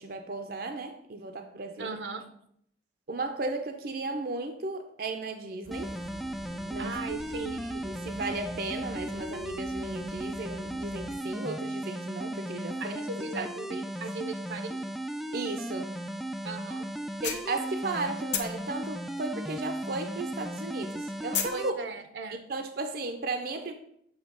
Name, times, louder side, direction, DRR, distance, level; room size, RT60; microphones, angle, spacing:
voice 1, 0.0-2.0 3.1-5.9 6.7-7.0 7.5-13.0 13.4-13.8 15.3-16.0 17.2-21.7 22.5-23.7, right 3 dB, 55° right, 5 dB, 0.6 m, -35 dB
voice 2, 1.8-2.3 6.8-7.7 12.8-14.8 16.4-16.9 21.5-22.4, right 3 dB, 85° right, 8 dB, 0.8 m, -38 dB
sound 1, 5.6-11.2, equal, 55° left, 1.3 m, -47 dB
sound 2, 5.7-21.7, right 1 dB, ahead, 0.3 m, -36 dB
sound 3, 16.4-16.5 16.9-18.0 18.3-20.2 20.4-21.6, left 8 dB, 80° left, 0.9 m, -33 dB
7.3 x 3.3 x 6.2 m, 0.70 s
head